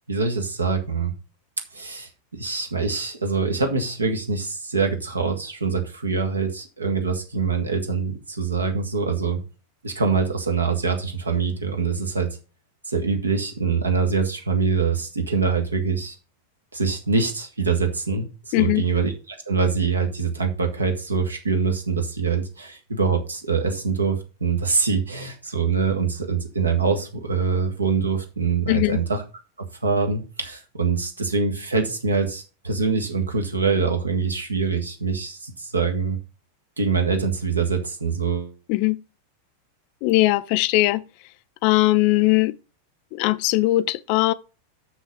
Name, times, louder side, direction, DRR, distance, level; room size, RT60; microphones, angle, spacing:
voice 1, 0.1-1.1 1.7-9.4 9.8-12.4 12.9-16.2 16.7-29.2 29.6-36.2 36.8-38.5, right 5 dB, 75° right, 1.7 m, -24 dB
voice 2, 18.5-18.9 28.7-29.0 38.7-39.0 40.0-41.0 41.6-42.5 43.1-44.3, left 19 dB, 45° left, 0.5 m, -20 dB
6.7 x 6.3 x 6.0 m
figure-of-eight pair, 90°, 0 cm